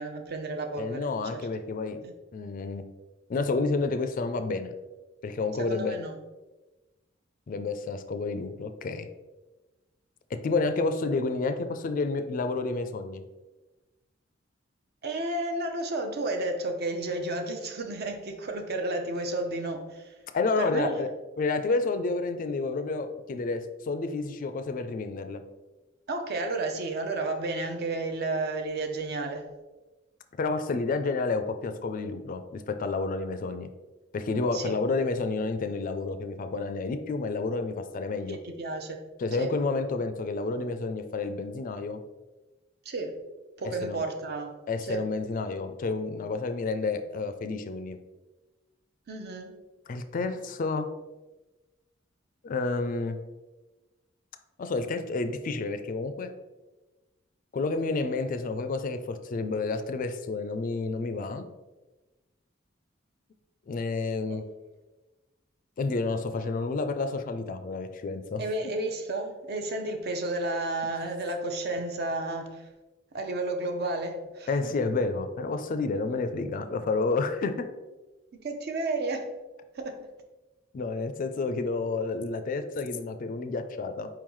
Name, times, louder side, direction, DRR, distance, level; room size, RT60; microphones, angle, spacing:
voice 1, 0.0-1.5 2.0-2.1 5.6-6.2 15.0-20.1 20.6-21.0 26.1-29.5 34.5-34.7 38.3-39.0 39.3-39.5 42.8-43.2 43.6-44.6 44.9-45.1 49.1-49.5 64.3-64.4 68.4-72.7 73.1-74.7 78.3-79.3 79.7-80.1, right 2 dB, 55° right, 5 dB, 0.6 m, -32 dB
voice 2, 0.8-2.0 2.3-2.9 3.3-4.7 5.2-6.0 7.5-9.1 10.3-13.2 20.3-21.1 21.4-25.4 30.4-33.7 34.1-38.4 39.2-42.0 43.8-44.0 44.7-48.0 49.9-50.9 52.4-53.2 54.6-56.3 57.5-61.5 63.7-64.4 65.8-68.4 74.5-77.7 80.7-84.1, left 3 dB, 45° left, 9 dB, 0.3 m, -30 dB
4.6 x 3.7 x 3.1 m, 1.1 s
head